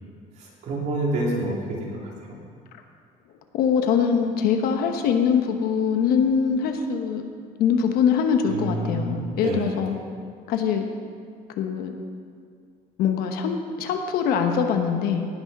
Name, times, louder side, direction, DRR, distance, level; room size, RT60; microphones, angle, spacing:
voice 1, 0.4-1.5 1.8-2.0 8.5-9.6, right 1 dB, 50° right, -3 dB, 2.8 m, -27 dB
voice 2, 3.5-7.2 7.6-9.9 10.5-10.8 11.6-11.9 13.0-15.3, left 7 dB, 75° left, 5 dB, 1.1 m, -23 dB
18.0 x 6.3 x 5.4 m, 2.2 s
cardioid pair, 180°, 16 cm